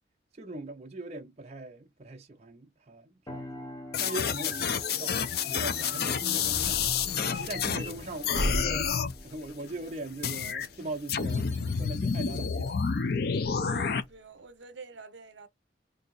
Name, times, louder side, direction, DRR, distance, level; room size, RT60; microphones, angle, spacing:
voice 1, 0.4-3.7 4.0-6.8 7.2-8.9 9.2-12.8, right 2 dB, 35° right, 0.5 m, -40 dB
sound 1, 3.3-13.0, left 1 dB, 15° left, 0.8 m, -49 dB
sound 2, 3.9-7.9 8.2-9.1 10.2-10.7 11.1-14.0, left 6 dB, 55° left, 0.4 m, -29 dB
sound 3, 5.4-14.1, left 1 dB, 70° left, 0.9 m, -39 dB
voice 2, 13.3-15.5, right 4 dB, 75° right, 0.8 m, -48 dB
2.7 x 2.7 x 4.0 m
head